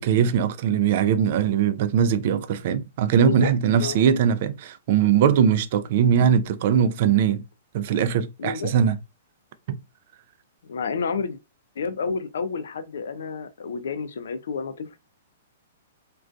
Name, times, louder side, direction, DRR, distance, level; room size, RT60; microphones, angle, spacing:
voice 1, 0.0-7.4 7.7-9.0 9.7-9.8, right 8 dB, 55° right, 0.3 m, -21 dB
voice 2, 3.2-4.2 5.4-5.5 8.4-8.7 10.7-11.4 11.8-15.0, left 5 dB, 75° left, 0.4 m, -30 dB
2.5 x 2.3 x 2.3 m
hypercardioid pair, 135°, 0 cm